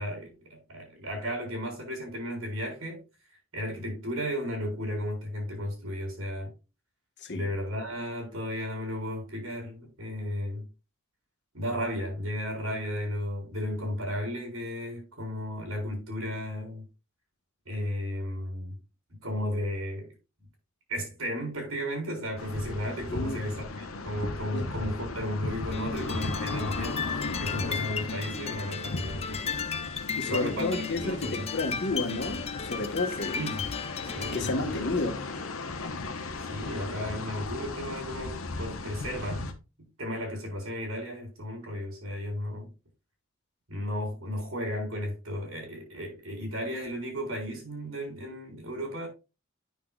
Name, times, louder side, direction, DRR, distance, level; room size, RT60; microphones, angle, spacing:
voice 1, 0.0-3.0 3.5-6.5 7.3-10.7 11.5-16.8 17.7-18.8 19.2-20.1 20.9-27.1 27.4-29.7 30.3-31.5 33.3-33.7 34.1-34.9 36.5-39.5 40.0-42.7 43.7-49.1, equal, 90° right, 4.3 m, -34 dB
sound 1, 22.4-39.5, left 3 dB, 85° left, 1.0 m, -37 dB
voice 2, 23.1-23.4 24.5-24.6 30.1-33.4 34.3-35.2, left 2 dB, 55° left, 1.4 m, -31 dB
sound 2, 25.7-34.6, left 6 dB, 30° left, 0.6 m, -35 dB
9.4 x 6.1 x 2.4 m
head